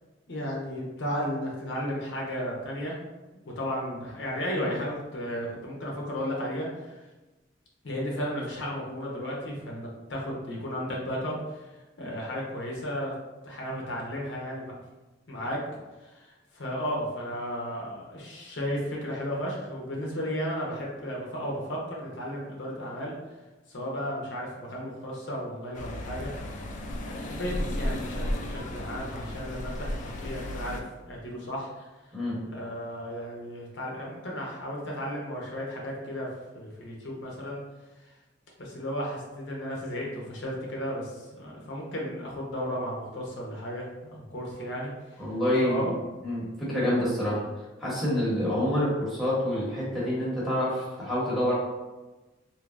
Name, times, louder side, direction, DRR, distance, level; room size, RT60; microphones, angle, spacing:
voice 1, 0.3-3.0 3.6-7.0 7.8-11.7 12.0-13.1 13.4-14.7 15.3-15.6 16.0-23.1 23.7-26.3 26.9-30.8 31.1-31.9 32.5-36.3 36.5-37.6 38.6-45.2 45.6-45.9, equal, 65° left, -3 dB, 0.7 m, -34 dB
sound 1, 25.7-30.8, left 1 dB, 40° left, 0.3 m, -34 dB
voice 2, 45.2-45.9 46.2-47.4 47.8-51.5, left 1 dB, ahead, -8 dB, 1.0 m, -27 dB
3.3 x 2.7 x 2.5 m, 1.1 s
head